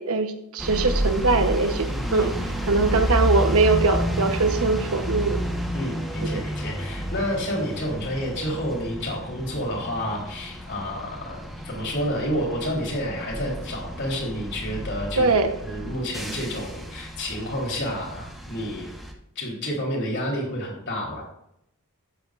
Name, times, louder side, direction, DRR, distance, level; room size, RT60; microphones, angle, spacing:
voice 1, 0.0-2.3 2.7-5.4 6.2-6.4 15.2-15.5, right 3 dB, 70° right, 7 dB, 1.1 m, -22 dB
sound 1, 0.6-19.1, equal, ahead, 1.2 m, -30 dB
voice 2, 1.9-2.3 5.7-18.9 19.4-21.2, equal, 55° left, -2 dB, 3.8 m, -30 dB
13.0 x 8.7 x 2.5 m, 0.80 s
head